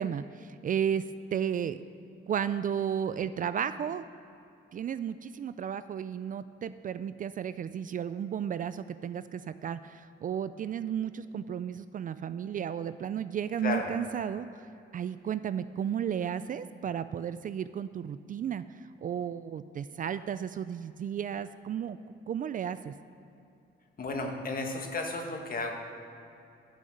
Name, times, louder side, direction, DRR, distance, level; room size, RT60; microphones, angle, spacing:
voice 1, 0.0-1.8 2.3-4.0 4.7-14.6 14.9-18.6 19.0-22.0 22.3-22.9, right 8 dB, 45° right, 13 dB, 0.4 m, -33 dB
voice 2, 24.0-25.7, left 3 dB, 45° left, 2 dB, 1.6 m, -33 dB
11.5 x 5.5 x 7.7 m, 2.7 s
cardioid pair, 90°, 20 cm